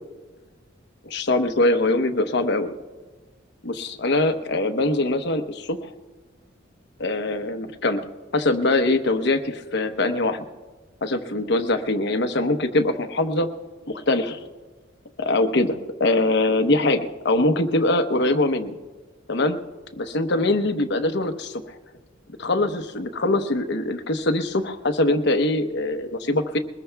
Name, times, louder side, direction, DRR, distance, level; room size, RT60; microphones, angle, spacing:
voice 1, 1.0-2.7 3.6-5.9 7.0-8.1 8.3-10.4 11.0-13.5 13.9-14.4 15.2-18.8 19.3-19.6 20.0-21.8 22.4-26.6, left 2 dB, 60° left, 7 dB, 0.9 m, -23 dB
22.0 x 20.0 x 2.3 m, 1.3 s
head